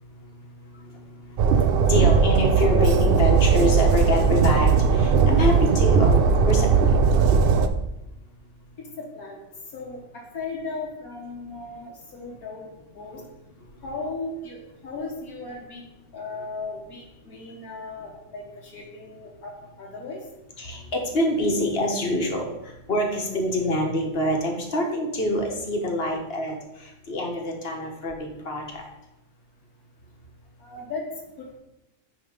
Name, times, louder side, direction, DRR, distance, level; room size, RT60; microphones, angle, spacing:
voice 1, 0.0-6.7 13.1-13.2 13.6-13.7 20.6-28.8, left 1 dB, 45° left, 2 dB, 1.4 m, -26 dB
Train, 1.4-7.7, right 5 dB, 70° right, 0.5 m, -18 dB
voice 2, 9.0-9.4 9.7-13.2 13.8-15.8 16.1-20.2 30.6-31.1 31.4-31.6, left 3 dB, 85° left, -2 dB, 1.7 m, -36 dB
9.4 x 3.5 x 5.0 m, 0.93 s
omnidirectional pair, 1.5 m